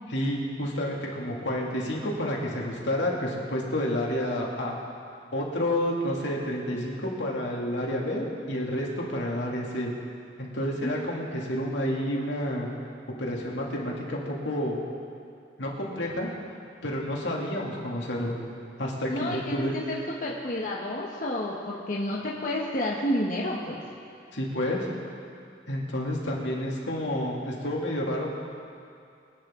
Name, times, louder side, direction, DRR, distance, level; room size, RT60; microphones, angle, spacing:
voice 1, 0.1-4.8 5.3-9.9 10.4-12.7 13.2-14.8 15.6-16.3 16.8-18.4 18.8-19.7 24.3-24.9 25.7-28.3, left 1 dB, 75° left, -3 dB, 2.5 m, -29 dB
voice 2, 19.1-23.8, left 1 dB, 45° left, -4 dB, 1.2 m, -30 dB
24.0 x 9.8 x 3.8 m, 2.4 s
head